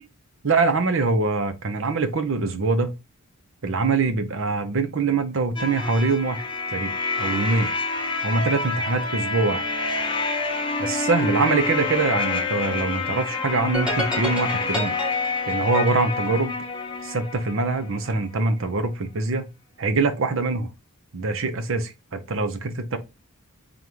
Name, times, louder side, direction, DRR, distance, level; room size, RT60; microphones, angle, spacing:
voice 1, 0.4-2.9 3.6-6.9 7.2-7.7 8.2-9.6 10.8-14.9 15.5-16.6 17.0-19.5 19.8-20.7 21.1-23.0, right 3 dB, 60° right, 0.7 m, -24 dB
sound 1, 5.6-18.2, left 3 dB, 20° left, 0.7 m, -28 dB
sound 2, 13.7-17.1, equal, 5° right, 1.2 m, -30 dB
3.8 x 3.5 x 3.0 m
head